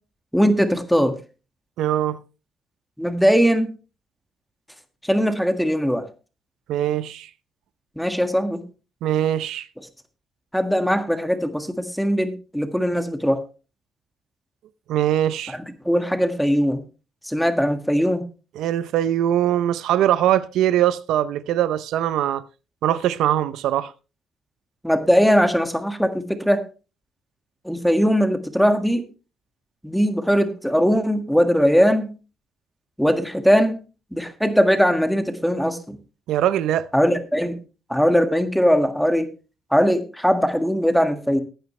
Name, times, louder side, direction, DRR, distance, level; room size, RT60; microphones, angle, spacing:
voice 1, 0.3-1.2 3.0-3.7 5.0-6.1 8.0-8.6 10.5-13.4 15.5-16.8 17.2-18.3 24.8-26.6 27.6-29.1 29.8-32.1 33.0-33.8 34.1-36.0 36.9-37.6 37.9-39.3 39.7-41.4, equal, ahead, 1.7 m, -20 dB
voice 2, 1.8-2.2 6.7-7.3 9.0-9.7 14.9-15.6 18.6-22.4 22.8-23.9 36.3-36.9, right 11 dB, 85° right, 0.5 m, -21 dB
15.5 x 9.2 x 3.2 m
cardioid pair, 90°, 0 cm